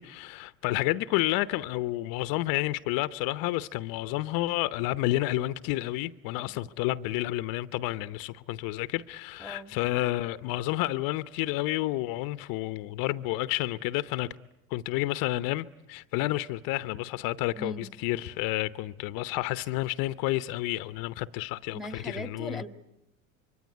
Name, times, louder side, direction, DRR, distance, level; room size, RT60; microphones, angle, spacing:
voice 1, 0.0-14.3 14.7-22.6, left 17 dB, 55° left, 0.9 m, -30 dB
voice 2, 9.4-9.8 17.5-17.9 21.7-22.7, equal, ahead, 1.7 m, -39 dB
25.5 x 23.5 x 9.8 m
supercardioid pair, 100°, 40 cm